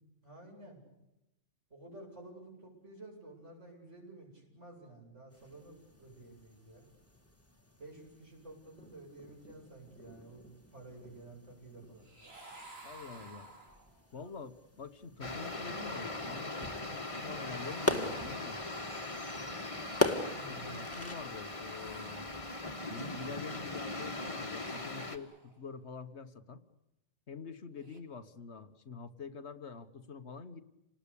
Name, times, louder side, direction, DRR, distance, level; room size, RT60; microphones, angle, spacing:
voice 1, 0.2-0.8 1.7-6.9 7.8-12.0 20.3-20.9, right 2 dB, 80° right, 0 dB, 8.4 m, -52 dB
sound 1, 5.3-21.2, left 2 dB, 10° left, 2.1 m, -41 dB
sound 2, 12.0-14.2 17.4-19.0 21.4-23.0 24.3-25.7 27.7-28.0, right 2 dB, 55° right, 3.2 m, -54 dB
voice 2, 12.8-13.5 14.1-18.6 20.1-22.3 22.9-26.6 27.3-30.6, left 5 dB, 65° left, 11 dB, 1.6 m, -46 dB
sound 3, 15.2-25.2, left 2 dB, 25° left, 2.0 m, -40 dB
29.0 x 19.5 x 8.5 m, 0.93 s
omnidirectional pair, 1.2 m